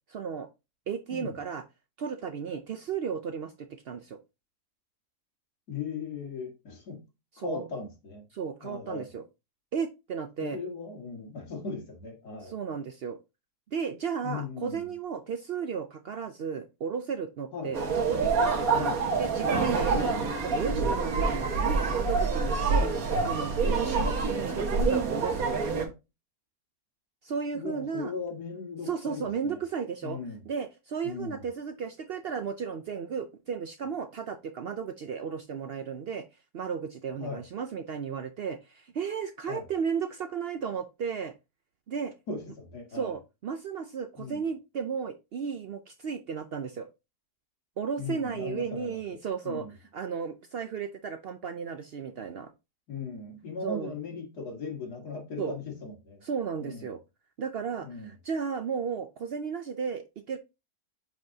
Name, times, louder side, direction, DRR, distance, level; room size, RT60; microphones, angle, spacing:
voice 1, 0.1-0.5 0.9-1.6 2.0-4.2 7.3-7.7 8.3-9.2 9.7-10.6 12.4-13.2 13.7-22.9 23.2-25.9 27.2-28.1 28.8-30.2 30.5-36.3 36.5-41.3 41.9-42.1 42.9-46.9 47.8-49.7 49.9-52.5 53.6-53.9 55.4-55.6 56.2-57.0 57.4-60.4, right 6 dB, 80° right, 0.5 m, -34 dB
voice 2, 5.7-7.0 7.4-8.2 8.6-9.1 10.4-12.6 14.2-14.8 17.5-17.8 18.7-19.0 22.8-23.0 27.5-29.6 30.0-30.4 31.0-31.4 37.2-37.4 39.5-39.6 42.3-43.2 44.2-44.4 48.0-49.0 49.4-49.7 52.9-56.2 56.6-56.9 57.8-58.1, left 4 dB, 75° left, 2.6 m, -38 dB
sound 1, 17.7-25.8, right 4 dB, 60° right, 1.8 m, -27 dB
7.9 x 5.2 x 2.7 m
omnidirectional pair, 1.7 m